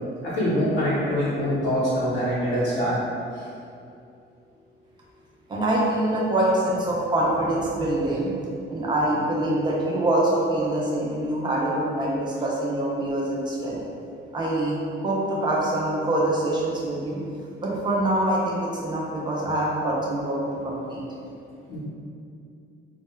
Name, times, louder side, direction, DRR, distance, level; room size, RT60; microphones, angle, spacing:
voice 1, 0.2-2.9 3.3-3.4 21.7-21.8, equal, 90° left, -11 dB, 0.8 m, -24 dB
voice 2, 5.5-8.3 8.7-13.8 14.3-17.2 17.6-20.4 20.6-21.0, right 1 dB, 25° right, -4 dB, 0.4 m, -25 dB
2.1 x 2.1 x 3.0 m, 2.5 s
cardioid pair, 175°, 20 cm